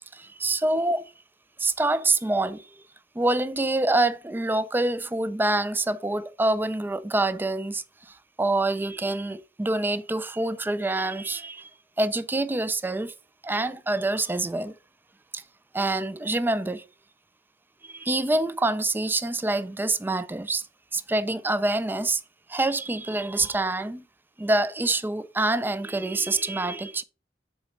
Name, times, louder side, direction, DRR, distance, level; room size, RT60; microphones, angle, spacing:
voice 1, 0.1-1.1 1.6-2.7 3.2-11.7 12.0-13.1 13.4-14.7 15.3-15.4 15.7-16.8 17.8-20.6 20.9-22.2 22.5-24.0 24.4-27.0, right 2 dB, 10° right, 0.3 m, -26 dB
6.3 x 4.1 x 5.0 m
head